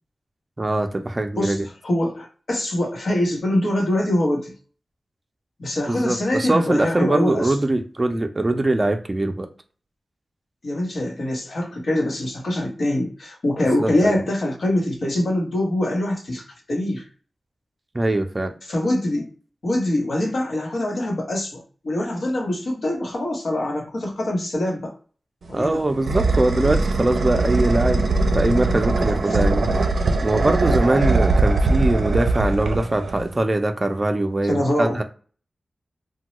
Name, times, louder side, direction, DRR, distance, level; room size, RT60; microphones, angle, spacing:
voice 1, 0.6-1.6 5.9-9.5 13.8-14.2 17.9-18.5 25.5-28.0 28.3-29.7 30.2-35.0, right 2 dB, 30° right, 0.5 m, -22 dB
voice 2, 1.3-4.5 5.6-7.6 10.6-17.0 18.6-19.3 19.6-25.0 25.5-25.9 29.3-29.4 34.4-35.0, left 1 dB, 70° left, 0.9 m, -24 dB
sound 1, 25.4-33.4, right 3 dB, 85° right, 0.4 m, -21 dB
3.0 x 2.2 x 2.9 m
wide cardioid pair, 90°, 0 cm